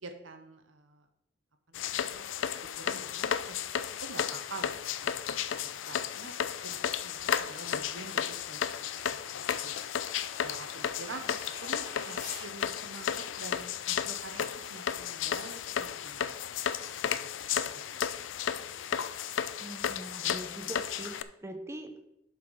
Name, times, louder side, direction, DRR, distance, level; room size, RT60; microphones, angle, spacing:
voice 1, 0.0-1.0 1.7-2.3 2.8-3.6 4.0-8.7 9.1-9.8 10.4-11.4 11.6-16.6 17.2-18.0, right 3 dB, 85° right, 7 dB, 1.0 m, -47 dB
sound 1, 1.7-21.2, left 8 dB, 70° left, 0.4 m, -34 dB
sound 2, 4.8-12.5, left 2 dB, 40° left, 2.5 m, -51 dB
voice 2, 19.6-22.1, right 1 dB, 15° right, 5 dB, 0.7 m, -42 dB
8.0 x 4.6 x 5.4 m, 0.81 s
head